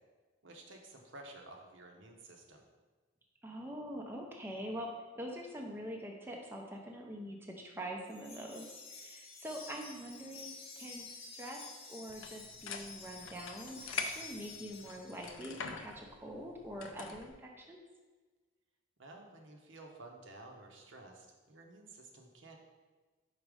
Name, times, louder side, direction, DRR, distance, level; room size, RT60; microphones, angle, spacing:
voice 1, 0.4-2.6 19.0-22.6, right 2 dB, 65° right, 2 dB, 0.8 m, -53 dB
voice 2, 3.4-4.9 5.1-11.6 11.9-17.8, equal, 10° right, 0 dB, 0.6 m, -44 dB
Wind chime, 8.1-15.6, left 4 dB, 30° left, 0.9 m, -50 dB
sound 1, 12.1-17.3, left 5 dB, 70° left, 0.5 m, -45 dB
5.2 x 4.1 x 4.8 m, 1.3 s
head